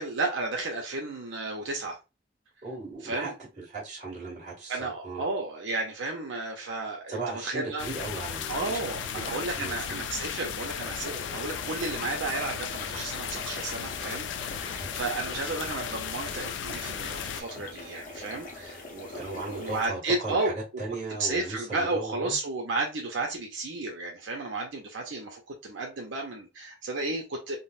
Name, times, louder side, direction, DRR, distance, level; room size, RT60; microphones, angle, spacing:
voice 1, 0.0-2.0 3.0-3.3 4.7-7.9 8.5-20.5 21.2-27.6, right 3 dB, 85° right, 0.7 m, -33 dB
voice 2, 2.6-5.2 7.1-8.8 9.2-10.1 14.5-14.6 17.0-17.2 19.1-22.4, right 3 dB, 40° right, 1.7 m, -37 dB
sound 1, 7.8-17.4, left 8 dB, 75° left, 0.3 m, -36 dB
sound 2, 10.8-19.9, left 2 dB, 45° left, 0.7 m, -43 dB
3.8 x 2.0 x 2.4 m
head